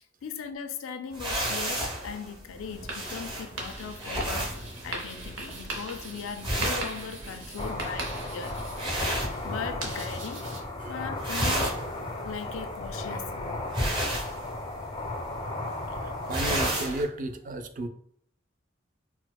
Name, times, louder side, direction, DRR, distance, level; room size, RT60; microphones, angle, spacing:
voice 1, 0.2-8.6 8.9-9.2 9.4-10.5 10.9-11.9 12.2-13.7, left 6 dB, 90° left, 0.4 m, -39 dB
sound 1, 1.1-10.1 10.4-10.8 11.1-17.0, right 1 dB, 25° right, 0.7 m, -32 dB
sound 2, 2.5-10.6, right 2 dB, 90° right, 0.7 m, -39 dB
sound 3, 7.6-16.7, left 2 dB, 25° left, 0.4 m, -35 dB
voice 2, 13.8-14.2 15.9-17.9, right 2 dB, 40° right, 0.4 m, -35 dB
4.3 x 2.1 x 2.2 m
head